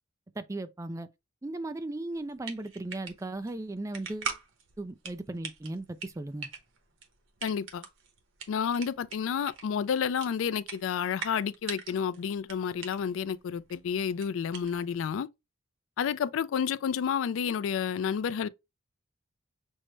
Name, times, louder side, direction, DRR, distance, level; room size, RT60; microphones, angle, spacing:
voice 1, 0.4-1.1 1.4-4.3 4.8-6.5, right 2 dB, 15° right, 0.3 m, -37 dB
sound 1, 2.1-15.1, right 6 dB, 85° right, 1.0 m, -43 dB
voice 2, 7.4-7.8 8.5-15.3 16.0-18.5, left 7 dB, 90° left, 0.3 m, -30 dB
6.2 x 2.1 x 3.1 m
head